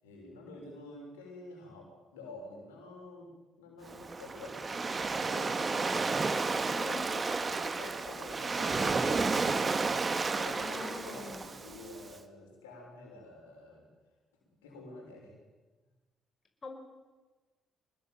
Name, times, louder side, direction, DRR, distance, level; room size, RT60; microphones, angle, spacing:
voice 1, 0.0-3.3 3.6-5.6 6.5-9.3 10.2-13.9 14.6-15.4, left 2 dB, 85° left, -1 dB, 6.6 m, -48 dB
Waves surf, 3.9-12.1, right 4 dB, 35° right, 2.2 m, -32 dB
voice 2, 6.8-7.1 10.6-11.4 16.6-16.7, left 3 dB, 35° left, 4 dB, 5.9 m, -43 dB
26.5 x 20.0 x 9.2 m, 1.3 s
hypercardioid pair, 45°, 0 cm